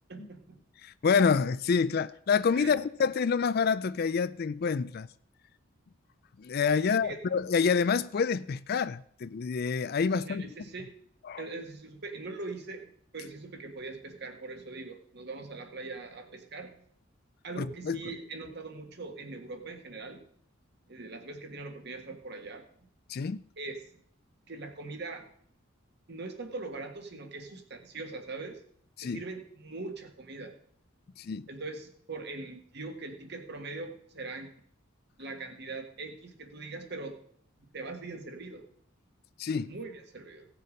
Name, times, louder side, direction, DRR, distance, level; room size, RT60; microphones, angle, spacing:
voice 1, 0.1-0.6 2.5-2.7 6.8-7.2 10.1-10.9 11.4-16.8 17.4-20.2 20.9-22.6 23.6-23.8 24.5-25.3 26.1-28.6 29.0-30.5 31.5-34.5 35.2-37.2 37.7-38.7 39.7-40.5, right 3 dB, 55° right, 1.6 m, -41 dB
voice 2, 0.8-5.1 6.4-10.5 11.3-11.4 17.6-18.0 23.1-23.4 29.0-29.2 31.2-31.5 39.4-39.7, left 5 dB, 50° left, 0.4 m, -27 dB
16.5 x 6.7 x 5.2 m
head